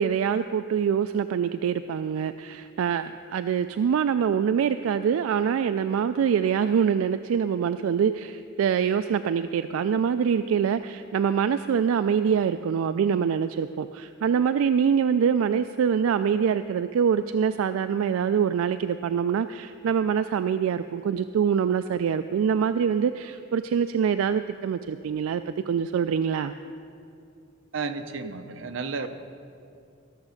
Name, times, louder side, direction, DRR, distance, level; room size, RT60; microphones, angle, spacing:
voice 1, 0.0-26.5, right 7 dB, 85° right, 11 dB, 0.3 m, -24 dB
voice 2, 27.7-29.1, right 4 dB, 65° right, 8 dB, 0.7 m, -32 dB
14.0 x 7.1 x 6.5 m, 2.4 s
head